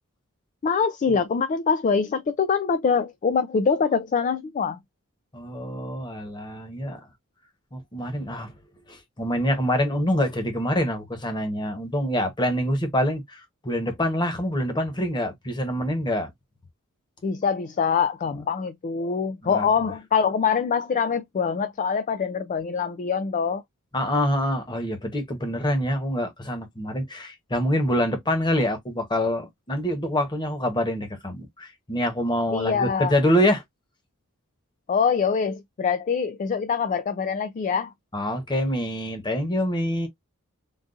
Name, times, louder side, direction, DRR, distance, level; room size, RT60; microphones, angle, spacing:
voice 1, 0.6-4.8 17.2-23.6 32.5-33.1 34.9-37.9, left 6 dB, 35° left, 0.3 m, -24 dB
voice 2, 5.3-7.0 7.7-8.5 8.9-16.3 19.4-19.7 23.9-33.6 38.1-40.1, equal, 20° left, 1.0 m, -26 dB
3.8 x 2.4 x 2.5 m
head